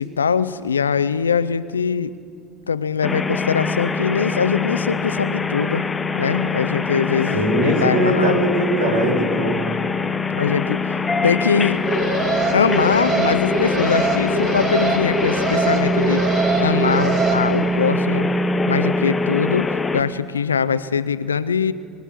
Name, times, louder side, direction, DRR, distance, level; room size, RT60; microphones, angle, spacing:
voice 1, 0.0-2.1 2.7-5.8 6.1-8.5 10.4-10.8 11.2-11.8 12.5-16.3 16.6-18.3 18.7-21.7, left 6 dB, 80° left, 16 dB, 0.4 m, -22 dB
sound 1, 3.0-20.0, left 3 dB, 20° left, 0.8 m, -23 dB
voice 2, 7.3-9.6, right 1 dB, 70° right, 0 dB, 3.2 m, -20 dB
Alarm, 11.7-17.3, right 3 dB, 55° right, 2.6 m, -23 dB
23.0 x 8.1 x 7.4 m, 2.3 s
figure-of-eight pair, 65°, 0 cm